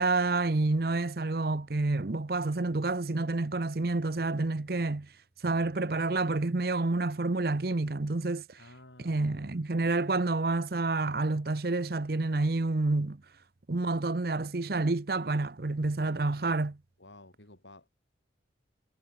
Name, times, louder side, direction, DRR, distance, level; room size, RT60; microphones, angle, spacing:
voice 1, 0.0-5.1 5.4-8.6 9.0-13.2 13.7-16.8, right 2 dB, 55° right, 0.8 m, -29 dB
voice 2, 8.6-9.6 17.0-17.9, left 2 dB, 80° left, 6.4 m, -53 dB
head